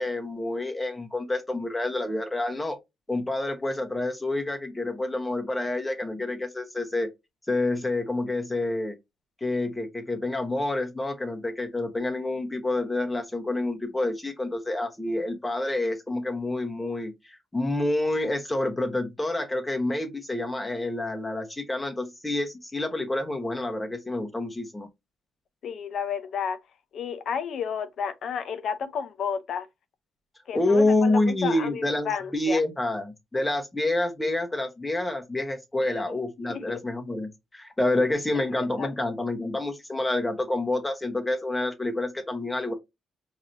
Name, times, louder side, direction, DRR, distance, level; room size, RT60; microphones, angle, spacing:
voice 1, 0.0-2.8 3.1-7.1 7.5-9.0 9.4-24.9 30.5-42.7, left 2 dB, 15° left, 1.0 m, -28 dB
voice 2, 25.6-26.6 26.9-29.7 30.5-32.6 36.5-36.8 38.8-38.9, left 7 dB, 65° left, 0.7 m, -31 dB
4.8 x 2.8 x 2.6 m
cardioid pair, 90°, 0 cm